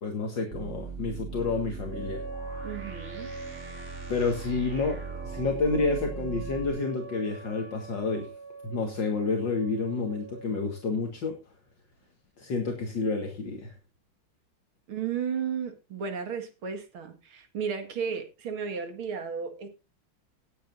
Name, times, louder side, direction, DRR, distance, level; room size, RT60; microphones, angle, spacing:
voice 1, 0.0-2.2 4.1-8.3 8.6-11.4 12.4-13.7, left 4 dB, 60° left, 2 dB, 2.4 m, -29 dB
sound 1, 0.5-6.7, right 5 dB, 35° right, 2.8 m, -39 dB
sound 2, 1.9-10.8, right 3 dB, 80° left, 4.6 m, -43 dB
voice 2, 2.6-3.3 14.9-19.7, right 6 dB, 80° right, 7 dB, 2.7 m, -34 dB
19.5 x 8.3 x 2.6 m, 0.27 s
omnidirectional pair, 2.3 m